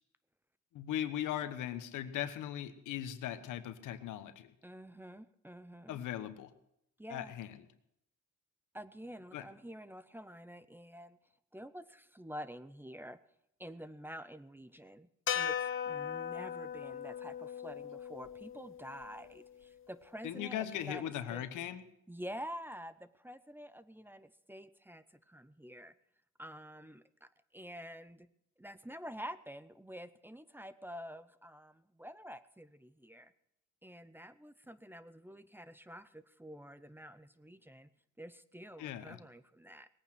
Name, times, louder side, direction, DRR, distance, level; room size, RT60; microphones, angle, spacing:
voice 1, 0.7-4.5 5.9-6.5 7.1-7.5 9.3-9.4 20.2-21.8 38.8-39.2, left 11 dB, 85° left, 11 dB, 1.2 m, -39 dB
voice 2, 4.6-6.0 7.0-7.4 8.7-11.2 11.5-13.2 13.6-21.5 22.1-25.9 26.4-28.3 28.6-33.3 33.8-37.9 38.2-39.9, equal, 5° right, 14 dB, 0.6 m, -48 dB
sound 1, 15.3-19.6, left 9 dB, 45° left, 1.1 m, -39 dB
19.5 x 8.9 x 6.1 m, 0.77 s
cardioid pair, 90°, 30 cm